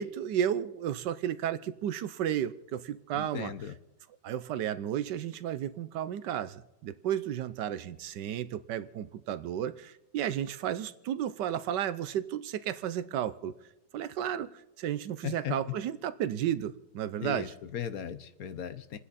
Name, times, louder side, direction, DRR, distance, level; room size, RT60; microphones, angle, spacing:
voice 1, 0.0-3.5 4.2-13.6 13.9-17.5, right 10 dB, 80° right, 1.3 m, -33 dB
voice 2, 3.1-3.8 15.2-15.7 17.2-19.0, left 9 dB, 60° left, 1.2 m, -37 dB
29.0 x 9.9 x 4.2 m
omnidirectional pair, 1.9 m